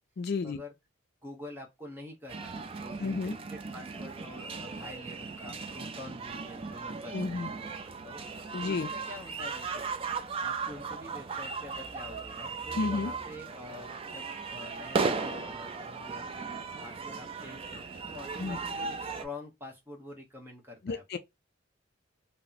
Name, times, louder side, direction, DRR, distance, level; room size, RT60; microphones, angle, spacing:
voice 1, 0.2-0.6 3.0-3.4 7.1-7.5 8.5-8.9 12.8-13.1 18.4-18.6 20.8-21.2, left 4 dB, 55° left, 0.4 m, -32 dB
voice 2, 1.2-8.2 8.6-9.8 10.4-16.5 16.8-21.0, left 2 dB, 10° right, 1.0 m, -47 dB
sound 1, 2.3-19.2, right 4 dB, 30° right, 0.4 m, -37 dB
3.0 x 2.1 x 3.9 m
head